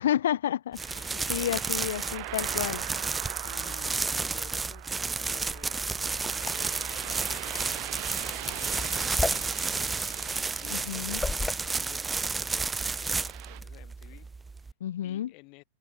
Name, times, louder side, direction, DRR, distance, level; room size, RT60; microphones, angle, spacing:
voice 1, 0.0-2.9 10.7-11.2 14.8-15.3, left 11 dB, 60° left, 1.3 m, -30 dB
sound 1, 0.7-14.7, right 4 dB, 10° right, 1.4 m, -32 dB
sound 2, 0.8-13.6, right 40 dB or more, 45° right, 6.7 m, -42 dB
voice 2, 1.1-2.1 3.4-5.8 6.4-7.7 8.0-9.4 10.2-11.2 11.5-12.7 13.0-14.7 15.0-15.6, left 28 dB, 45° left, 7.2 m, -53 dB
sound 3, 6.1-11.5, left 3 dB, 10° left, 0.4 m, -35 dB
figure-of-eight pair, 90°, 0 cm